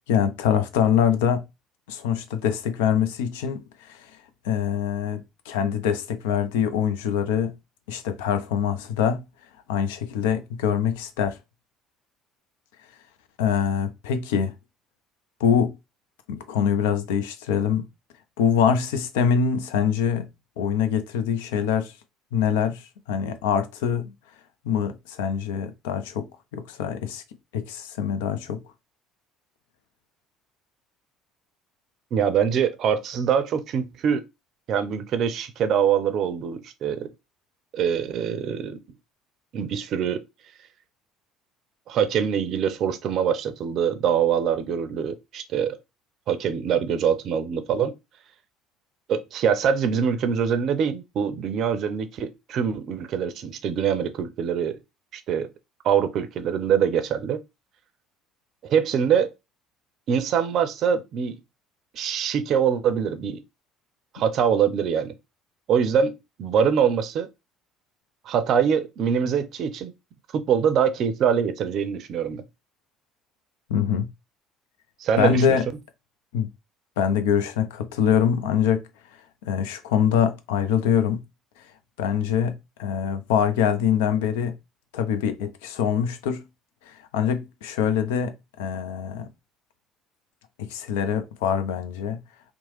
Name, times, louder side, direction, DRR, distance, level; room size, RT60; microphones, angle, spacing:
voice 1, 0.1-1.4 1.9-3.6 3.9-4.1 4.4-7.5 7.9-9.2 9.7-11.4 13.4-14.5 15.4-15.8 16.3-17.9 18.4-20.3 20.6-21.9 22.3-24.1 24.6-27.2 27.5-28.6 73.7-74.1 75.2-75.7 76.3-76.5 77.0-78.8 79.5-81.2 82.0-84.5 84.9-86.4 86.9-89.3 90.6-92.2, left 8 dB, 75° left, 0.4 m, -24 dB
voice 2, 32.1-34.2 34.7-37.1 37.7-38.8 39.5-40.2 41.9-45.8 46.3-47.9 49.1-54.8 55.1-55.5 55.8-57.4 58.6-59.3 60.1-61.4 61.9-63.4 64.1-65.1 65.7-67.3 68.3-69.9 70.3-72.4 75.0-75.6, right 7 dB, 55° right, 0.5 m, -24 dB
2.9 x 2.1 x 3.0 m
hypercardioid pair, 60°, 0 cm